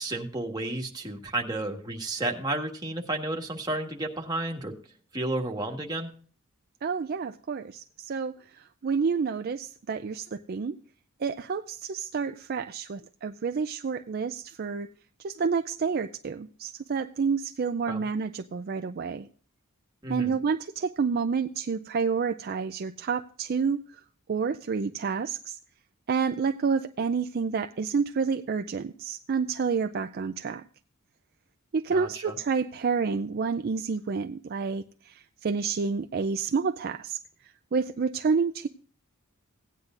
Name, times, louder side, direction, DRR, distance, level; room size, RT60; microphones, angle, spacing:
voice 1, 0.0-4.7 5.1-6.1 17.9-18.0 20.0-20.4 31.9-32.3, right 2 dB, 20° right, 1 dB, 1.5 m, -32 dB
voice 2, 6.8-10.8 11.2-14.9 15.2-19.3 20.1-24.0 24.3-25.6 26.1-30.6 31.7-38.7, right 5 dB, 45° right, 8 dB, 0.4 m, -29 dB
16.5 x 9.7 x 2.5 m, 0.43 s
head